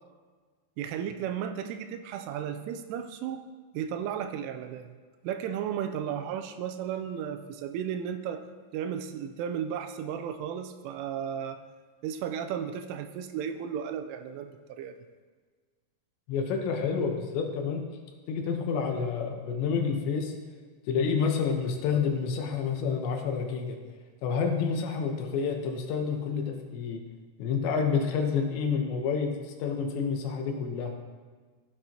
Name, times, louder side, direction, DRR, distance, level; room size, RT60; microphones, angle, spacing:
voice 1, 0.8-3.4 3.7-4.9 5.2-8.4 8.7-11.6 12.0-14.9, right 8 dB, 90° right, 8 dB, 3.1 m, -34 dB
voice 2, 16.3-17.8 18.3-20.3 20.9-23.8 24.2-27.0 27.4-29.3 29.6-30.9, left 6 dB, 75° left, 2 dB, 3.1 m, -29 dB
15.5 x 7.8 x 2.9 m, 1.5 s
omnidirectional pair, 5.6 m